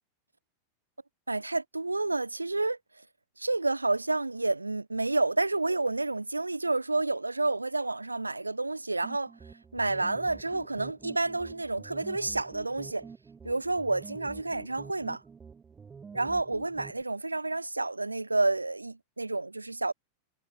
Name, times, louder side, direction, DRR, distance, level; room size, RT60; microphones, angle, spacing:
voice 1, 1.3-2.8 3.4-9.3 9.7-13.0 13.4-15.2 16.1-19.9, right 2 dB, 80° right, 0.4 m, -29 dB
sound 1, 9.0-17.0, right 5 dB, 15° right, 1.8 m, -48 dB
figure-of-eight pair, 90°, 0 cm